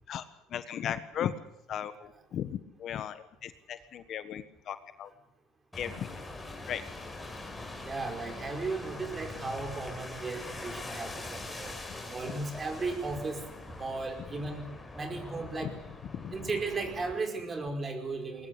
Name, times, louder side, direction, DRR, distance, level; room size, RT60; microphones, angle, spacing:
voice 1, 0.5-1.3 1.7-5.1 5.7-6.1 6.7-6.8 12.2-12.3 14.2-14.4 15.6-15.7 16.1-16.5, left 10 dB, 50° left, 11 dB, 1.4 m, -37 dB
sound 1, 5.7-17.2, left 2 dB, 10° left, 5.1 m, -43 dB
voice 2, 7.8-11.7 12.1-13.4 13.7-15.7 16.3-18.5, right 3 dB, 25° right, 5 dB, 5.2 m, -35 dB
21.0 x 20.0 x 8.4 m, 0.80 s
supercardioid pair, 100°, 0 cm